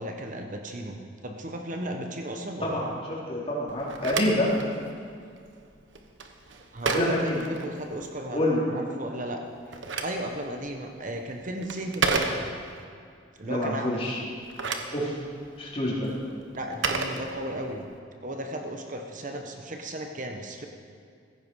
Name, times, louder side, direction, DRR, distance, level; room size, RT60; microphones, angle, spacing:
voice 1, 0.0-2.8 6.7-8.4 8.7-12.5 13.4-14.3 16.6-17.9 18.2-20.7, right 1 dB, 45° right, 3 dB, 1.2 m, -35 dB
voice 2, 3.3-4.5 6.8-7.4 8.3-8.6 13.4-14.2 14.9-15.1 15.6-16.1, left 1 dB, 30° left, -6 dB, 3.9 m, -27 dB
Telephone, 3.7-8.2 9.4-12.8 14.3-17.9, right 4 dB, 90° right, 1.3 m, -33 dB
16.0 x 15.5 x 4.8 m, 2.3 s
head